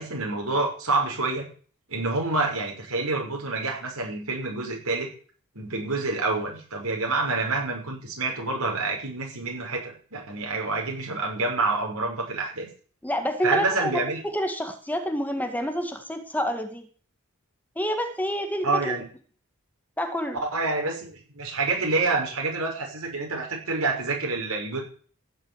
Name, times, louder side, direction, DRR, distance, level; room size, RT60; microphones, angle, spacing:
voice 1, 0.0-1.5 1.9-5.1 5.6-12.7 13.4-14.2 18.6-19.1 20.5-24.8, right 3 dB, 90° right, 0 dB, 5.8 m, -27 dB
voice 2, 13.0-13.9 14.2-16.9 17.8-18.9 20.0-20.4, equal, 10° left, 6 dB, 1.9 m, -28 dB
15.5 x 6.7 x 9.0 m, 0.43 s
head